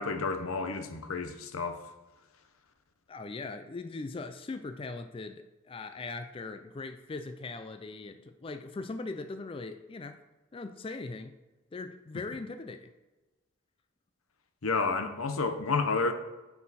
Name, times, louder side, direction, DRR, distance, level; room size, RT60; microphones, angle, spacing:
voice 1, 0.0-1.8 14.6-16.1, left 4 dB, 90° left, 0.8 m, -30 dB
voice 2, 3.1-10.2 10.5-11.3 11.7-12.9 15.5-15.6, left 3 dB, 25° left, 0.3 m, -40 dB
9.3 x 4.8 x 4.1 m
head